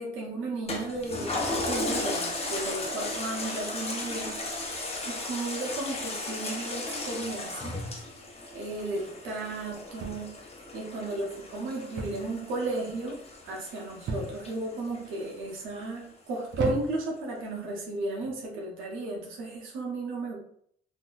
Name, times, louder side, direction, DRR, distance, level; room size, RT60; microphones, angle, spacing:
voice 1, 0.0-4.3 5.0-7.7 8.5-10.3 10.7-11.3 11.5-13.2 13.4-20.4, right 2 dB, 90° right, -2 dB, 0.9 m, -34 dB
Toilet flush, 0.7-15.5 16.0-16.1, left 2 dB, 30° left, 0.8 m, -35 dB
sound 1, 10.0-10.5 12.0-12.3 12.6-13.1 14.1-14.6 15.3-15.7 16.5-17.2 18.1-18.4, right 3 dB, 65° right, 0.7 m, -35 dB
3.7 x 2.8 x 2.4 m, 0.66 s
cardioid pair, 90°, 20 cm